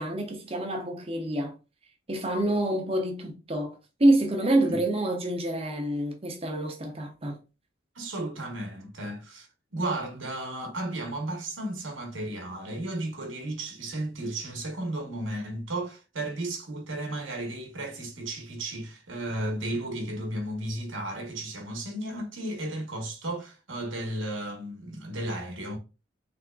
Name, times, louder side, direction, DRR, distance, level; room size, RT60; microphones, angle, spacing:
voice 1, 0.0-1.5 2.1-7.4, right 1 dB, 30° right, 0.7 m, -27 dB
voice 2, 7.9-9.5 9.7-25.8, right 1 dB, 90° right, 1.1 m, -34 dB
3.9 x 3.4 x 2.2 m
head